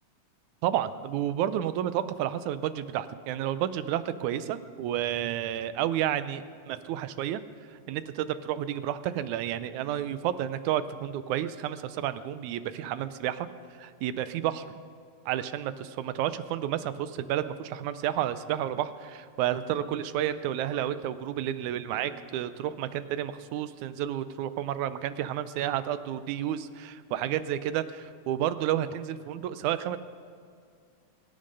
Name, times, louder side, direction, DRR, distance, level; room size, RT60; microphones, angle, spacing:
voice 1, 0.6-7.4 7.9-13.5 13.8-14.7 15.3-30.0, right 11 dB, 85° right, 13 dB, 2.1 m, -31 dB
23.0 x 8.9 x 5.5 m, 2.2 s
omnidirectional pair, 3.4 m